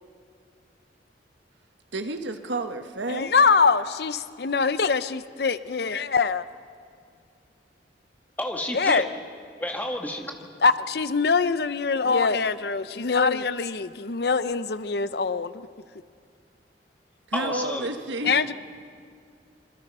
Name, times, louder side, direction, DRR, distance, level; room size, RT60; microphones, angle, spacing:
voice 1, 1.9-3.2 17.3-18.3, right 2 dB, 75° right, 7 dB, 1.3 m, -30 dB
voice 2, 3.1-6.4 8.7-9.1 10.6-15.5 18.2-18.5, left 5 dB, 55° left, 14 dB, 0.6 m, -23 dB
voice 3, 8.4-9.0 9.6-10.3 17.3-17.9 18.2-18.3, left 1 dB, 10° left, 2 dB, 1.8 m, -30 dB
26.5 x 23.5 x 5.5 m, 2.3 s
head